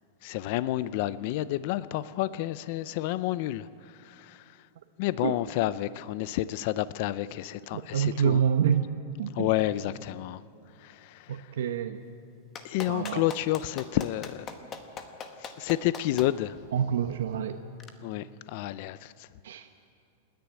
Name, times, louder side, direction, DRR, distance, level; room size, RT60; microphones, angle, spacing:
voice 1, 0.2-4.6 5.0-8.4 9.3-10.4 10.8-11.5 12.6-14.5 15.4-16.6 18.0-19.3, left 15 dB, 40° left, 17 dB, 0.4 m, -30 dB
voice 2, 7.9-8.9 9.2-9.5 11.3-12.0 12.9-13.2 16.7-17.6 19.4-19.7, right 8 dB, 80° right, 7 dB, 0.9 m, -27 dB
Clapping, 12.5-16.3 17.8-17.9, left 6 dB, 20° left, 1.1 m, -40 dB
28.5 x 10.5 x 9.1 m, 2.4 s
supercardioid pair, 180°, 0 cm